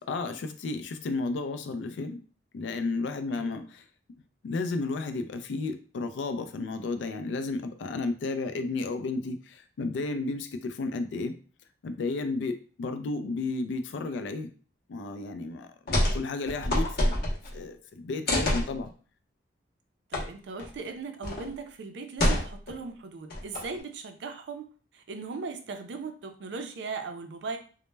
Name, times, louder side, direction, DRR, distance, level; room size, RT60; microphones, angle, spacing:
voice 1, 0.0-2.2 2.5-3.8 4.4-11.4 11.8-14.5 14.9-17.2 17.5-18.9, left 3 dB, 80° left, 8 dB, 0.3 m, -33 dB
voice 2, 3.3-3.6 20.1-27.6, right 4 dB, 75° right, 6 dB, 0.4 m, -38 dB
sound 1, 15.9-16.2 16.5-17.6 18.3-18.7 20.1-20.2 20.6-20.7 21.2-21.5 22.2-22.8 23.3-23.8, left 1 dB, 60° left, 0.7 m, -26 dB
2.1 x 2.0 x 3.1 m, 0.40 s
head